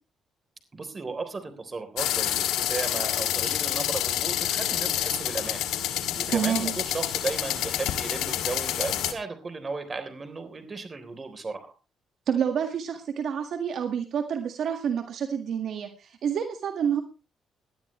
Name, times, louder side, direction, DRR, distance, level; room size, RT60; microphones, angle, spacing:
voice 1, 0.7-5.6 6.2-11.7, right 4 dB, 30° right, 9 dB, 3.6 m, -35 dB
sound 1, 2.0-9.1, left 12 dB, 90° left, 1.8 m, -28 dB
voice 2, 6.3-6.7 12.3-17.0, right 8 dB, 65° right, 6 dB, 1.8 m, -28 dB
19.5 x 12.0 x 3.2 m, 0.31 s
cardioid pair, 90°, 0 cm